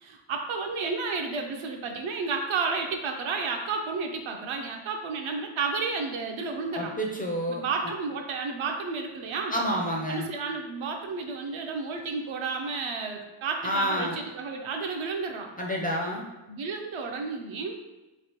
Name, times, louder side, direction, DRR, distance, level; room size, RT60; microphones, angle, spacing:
voice 1, 0.0-6.9 7.5-9.5 10.1-15.5 16.5-17.8, right 4 dB, 70° right, 3 dB, 0.7 m, -32 dB
voice 2, 6.7-7.9 9.5-10.3 13.6-14.2 15.6-16.3, equal, 20° left, -1 dB, 0.4 m, -29 dB
3.2 x 2.7 x 2.9 m, 1.1 s
cardioid pair, 100°, 49 cm